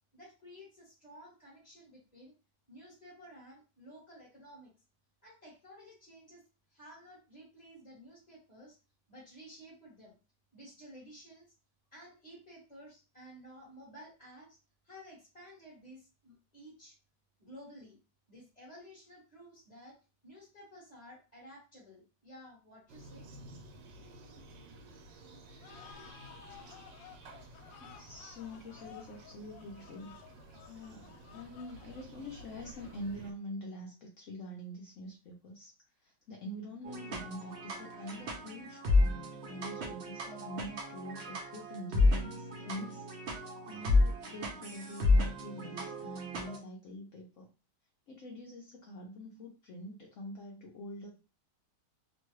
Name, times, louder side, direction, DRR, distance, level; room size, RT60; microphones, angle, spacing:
voice 1, 0.1-2.3 2.7-4.7 5.2-6.4 6.7-8.8 9.1-10.2 10.5-11.5 11.9-14.6 14.8-17.0 17.4-18.0 18.3-20.0 20.2-23.3, equal, 25° left, -6 dB, 1.0 m, -53 dB
sound 1, 22.9-33.3, right 2 dB, 80° right, 1.3 m, -53 dB
sound 2, 25.6-33.5, left 9 dB, 90° left, 1.3 m, -55 dB
voice 2, 27.8-30.2 30.7-35.7 36.0-47.5 48.1-51.2, left 1 dB, 65° left, -1 dB, 0.8 m, -45 dB
sound 3, 36.8-46.6, left 2 dB, 50° right, 0.8 m, -31 dB
3.0 x 2.2 x 3.1 m, 0.31 s
omnidirectional pair, 1.9 m